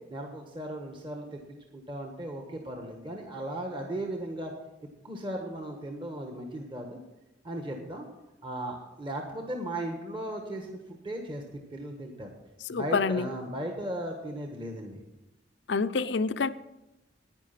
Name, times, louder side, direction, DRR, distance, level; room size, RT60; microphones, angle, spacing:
voice 1, 0.1-1.4 1.7-4.5 5.0-7.0 7.4-8.0 8.4-12.3 12.7-15.0, right 1 dB, 30° right, 2 dB, 1.4 m, -36 dB
voice 2, 12.6-13.3 15.7-16.5, left 4 dB, 70° left, 14 dB, 0.5 m, -27 dB
10.5 x 9.9 x 5.9 m, 0.98 s
head